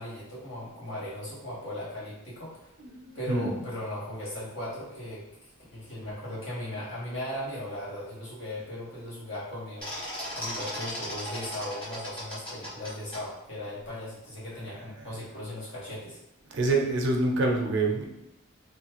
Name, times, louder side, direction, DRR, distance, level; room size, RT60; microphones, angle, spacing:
voice 1, 0.0-2.7 3.1-5.2 5.7-9.9 10.3-16.2, left 1 dB, 75° left, -7 dB, 1.4 m, -37 dB
voice 2, 2.8-3.6 14.5-15.2 16.5-18.0, right 2 dB, 60° right, 2 dB, 0.5 m, -27 dB
sound 1, 9.8-13.2, equal, 25° left, 1.2 m, -36 dB
3.1 x 2.2 x 2.9 m, 0.89 s
head